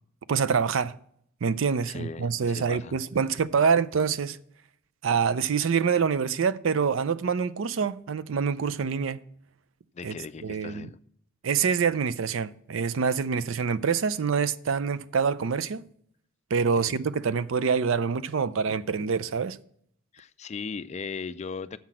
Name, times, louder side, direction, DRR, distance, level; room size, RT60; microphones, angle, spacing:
voice 1, 0.3-0.9 1.4-4.4 5.0-9.2 10.0-10.1 10.4-10.9 11.4-15.8 16.5-19.6, right 6 dB, 70° right, 0.5 m, -26 dB
voice 2, 1.9-3.0 9.9-11.0 16.8-17.1 20.1-21.8, left 5 dB, 35° left, 0.3 m, -38 dB
7.1 x 5.9 x 7.5 m
head